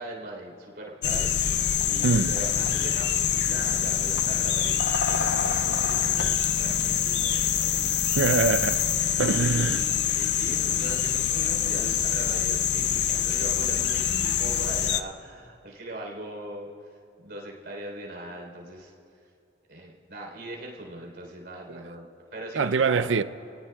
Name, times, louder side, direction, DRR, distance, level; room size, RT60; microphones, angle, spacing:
voice 1, 0.0-8.2 9.2-9.8 10.1-16.7 17.2-18.9 19.7-23.1, right 1 dB, 60° right, 3.7 m, -40 dB
sound 1, 1.0-15.0, left 9 dB, 60° left, 0.5 m, -25 dB
voice 2, 2.0-2.4 8.1-8.8 9.2-9.8 21.7-21.9 22.6-23.2, right 5 dB, 85° right, 0.5 m, -24 dB
30.0 x 18.0 x 2.3 m
head